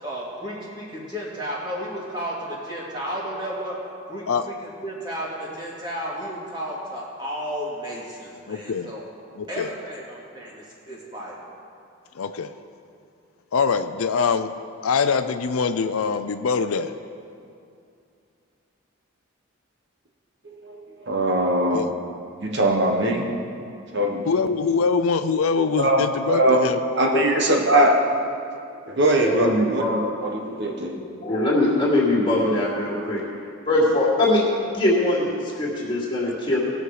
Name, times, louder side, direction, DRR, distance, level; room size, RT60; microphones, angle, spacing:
voice 1, 0.0-3.8 4.1-9.0 9.5-11.4, equal, 20° right, -5 dB, 2.3 m, -33 dB
voice 2, 8.5-8.9 9.4-9.7 12.2-12.5 13.5-14.5 14.8-16.9 21.7-21.9 24.3-26.8, left 5 dB, 85° left, 10 dB, 0.5 m, -23 dB
voice 3, 20.6-21.8 22.4-23.3 23.9-24.2 25.8-26.6 26.9-28.0 28.9-31.0, right 1 dB, 55° right, 0 dB, 1.2 m, -21 dB
voice 4, 29.2-30.0 30.5-33.2 33.7-36.6, left 1 dB, 25° left, -6 dB, 2.7 m, -22 dB
19.5 x 6.5 x 4.8 m, 2.4 s
head